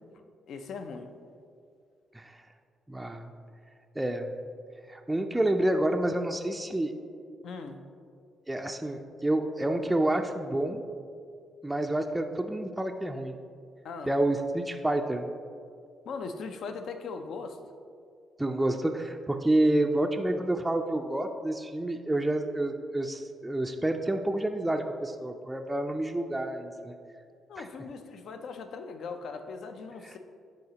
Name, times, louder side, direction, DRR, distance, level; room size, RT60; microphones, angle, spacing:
voice 1, 0.5-1.1 7.4-7.8 13.8-14.1 16.1-17.6 27.5-30.2, left 4 dB, 70° left, 7 dB, 0.5 m, -39 dB
voice 2, 2.9-3.3 4.0-4.3 4.9-6.9 8.5-10.8 11.6-13.4 14.1-15.3 18.4-27.0 27.6-27.7 30.0-30.1, right 1 dB, 10° right, 3 dB, 0.4 m, -29 dB
10.5 x 4.0 x 2.9 m, 2.3 s
cardioid pair, 90°, 0 cm